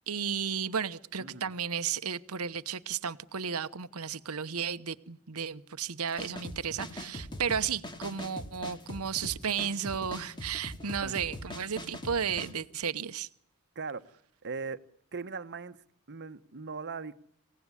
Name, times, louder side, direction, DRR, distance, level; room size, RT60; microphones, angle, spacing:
voice 1, 0.1-13.3, right 7 dB, 75° right, 12 dB, 1.0 m, -33 dB
voice 2, 1.2-1.5 11.0-11.2 13.7-14.0 14.4-14.8 15.1-15.8 16.1-17.1, right 4 dB, 50° right, 11 dB, 1.2 m, -39 dB
sound 1, 6.1-12.5, left 1 dB, 20° left, 2.3 m, -41 dB
26.5 x 17.0 x 9.8 m, 0.74 s
head